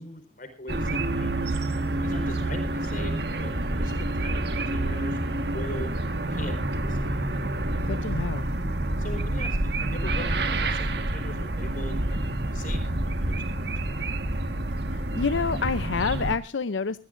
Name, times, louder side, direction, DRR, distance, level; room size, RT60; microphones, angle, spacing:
voice 1, 0.0-1.6 2.0-3.1 3.4-4.4 4.7-5.2 5.5-5.9 6.3-7.0 9.0-13.7, left 1 dB, 45° left, 7 dB, 4.7 m, -41 dB
sound 1, 0.7-16.4, right 1 dB, 60° right, 1.6 m, -28 dB
voice 2, 7.8-8.5 14.9-17.0, left 5 dB, 80° left, 13 dB, 0.6 m, -28 dB
21.5 x 17.0 x 2.6 m, 0.31 s
head